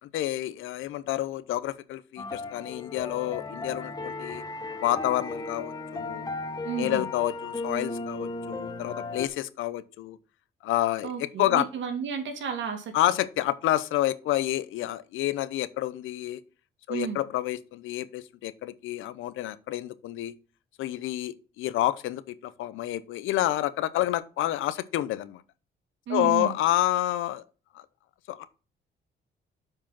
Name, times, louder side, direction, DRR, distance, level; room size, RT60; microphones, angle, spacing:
voice 1, 0.0-4.4 4.8-6.3 6.8-10.2 10.6-11.7 12.9-16.4 16.9-20.3 20.8-25.4 26.1-27.4 27.7-27.8 28.3-28.4, left 14 dB, 85° left, 0.8 m, -29 dB
sound 1, 2.2-9.3, left 3 dB, 20° left, 1.2 m, -36 dB
voice 2, 6.6-7.1 11.0-12.9 16.9-17.2 26.1-26.5, right 7 dB, 70° right, 2.4 m, -32 dB
7.5 x 4.9 x 5.9 m
cardioid pair, 90°, 20 cm